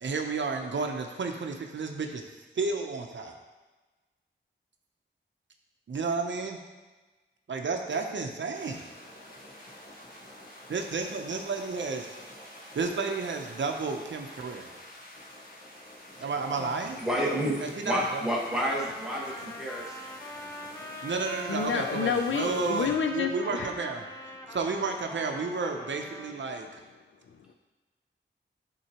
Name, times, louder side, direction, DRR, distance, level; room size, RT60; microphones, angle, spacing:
voice 1, 0.0-3.3 5.9-6.6 7.5-8.9 10.7-12.1 12.7-14.7 16.2-17.0 17.6-18.2 21.0-24.0 24.5-26.8, right 4 dB, 70° right, 3 dB, 0.7 m, -32 dB
sound 1, 8.5-22.9, left 1 dB, 50° left, 1.5 m, -48 dB
voice 2, 17.0-20.0, equal, 5° right, -4 dB, 1.4 m, -30 dB
Trumpet, 18.0-26.4, equal, 15° left, 0.6 m, -43 dB
voice 3, 20.2-21.1 21.5-23.7 27.3-27.5, left 6 dB, 80° left, 6 dB, 0.4 m, -31 dB
11.0 x 3.8 x 2.9 m, 1.2 s
wide cardioid pair, 115°, 20 cm